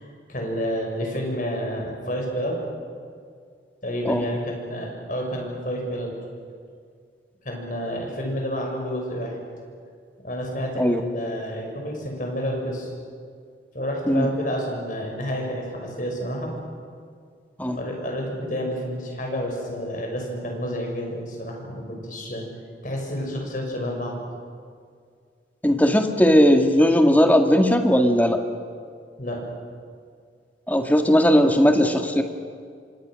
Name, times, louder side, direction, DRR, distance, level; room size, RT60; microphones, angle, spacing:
voice 1, 0.0-2.6 3.8-6.1 7.4-9.4 10.2-12.9 13.7-16.5 17.7-22.5 22.8-24.1 29.2-29.5, equal, 45° left, 1 dB, 6.2 m, -29 dB
voice 2, 25.6-28.4 30.7-32.2, equal, 10° left, 5 dB, 1.7 m, -18 dB
28.0 x 25.0 x 6.4 m, 2.2 s
head